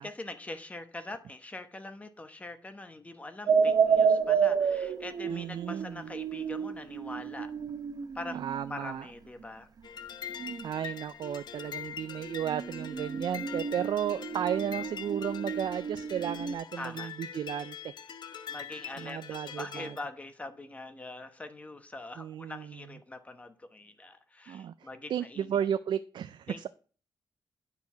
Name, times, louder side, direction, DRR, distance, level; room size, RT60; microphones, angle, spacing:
voice 1, 0.0-7.5 8.1-8.4 8.7-9.7 16.8-17.1 18.5-25.5 26.5-26.6, left 2 dB, 15° left, 8 dB, 0.9 m, -43 dB
sound 1, 3.5-8.6 10.4-10.7 12.5-16.5, right 6 dB, 50° right, 0.8 m, -30 dB
voice 2, 5.3-6.0 8.3-9.1 10.6-17.9 18.3-18.5 19.0-20.0 22.2-22.8 24.5-26.7, right 9 dB, 70° right, 12 dB, 0.3 m, -34 dB
sound 2, 9.8-20.1, left 8 dB, 60° left, 0.8 m, -43 dB
9.5 x 4.7 x 5.7 m, 0.41 s
wide cardioid pair, 150°, 8 cm